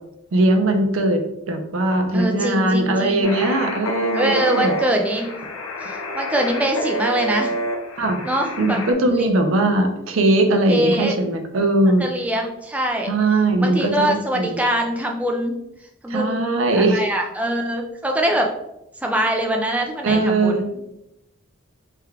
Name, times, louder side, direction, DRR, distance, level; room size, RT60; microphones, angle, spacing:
voice 1, 0.3-1.2 1.5-4.7 8.0-8.2 8.6-12.1 13.1-14.6 16.1-17.0 20.0-20.8, right 2 dB, 75° right, 5 dB, 0.5 m, -20 dB
voice 2, 2.1-3.3 4.1-5.3 5.8-7.5 8.2-8.8 9.1-9.3 10.7-11.1 12.0-13.1 13.6-15.6 16.0-16.4 16.7-18.5 19.0-20.7, right 1 dB, 5° right, 2 dB, 0.3 m, -23 dB
sound 1, 3.2-8.9, equal, 85° left, 0.6 m, -28 dB
3.4 x 2.3 x 3.3 m, 0.87 s
head